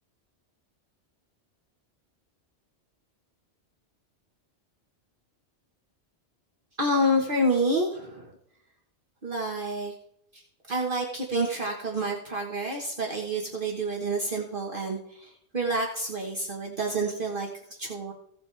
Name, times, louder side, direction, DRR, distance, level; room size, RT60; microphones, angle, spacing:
voice 1, 6.8-8.3 9.2-9.9 10.3-10.4 10.7-18.1, right 1 dB, 50° right, -1 dB, 1.6 m, -28 dB
16.5 x 8.0 x 3.4 m, 0.74 s
omnidirectional pair, 1.2 m